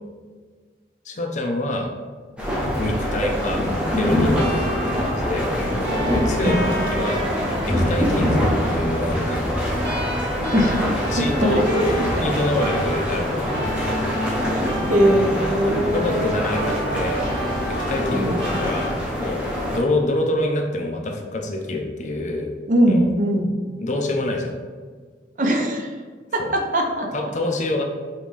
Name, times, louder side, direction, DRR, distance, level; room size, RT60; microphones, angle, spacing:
voice 1, 1.0-1.9 2.8-3.6 4.0-4.6 5.0-5.5 6.1-7.2 7.7-9.5 9.9-10.3 10.8-11.6 12.2-13.5 15.6-17.3 17.7-22.5 22.9-23.1 23.8-24.6 26.4-26.5 27.1-27.8, left 2 dB, 40° left, 3 dB, 0.5 m, -26 dB
sound 1, 2.4-19.8, equal, 5° right, 0.7 m, -24 dB
sound 2, 4.3-18.9, equal, 60° right, 1.1 m, -31 dB
voice 2, 11.2-12.2 14.5-16.4 18.1-18.4 22.7-23.5 25.4-25.9 26.3-27.1, right 1 dB, 45° right, 2 dB, 0.5 m, -21 dB
5.2 x 2.7 x 3.2 m, 1.5 s
head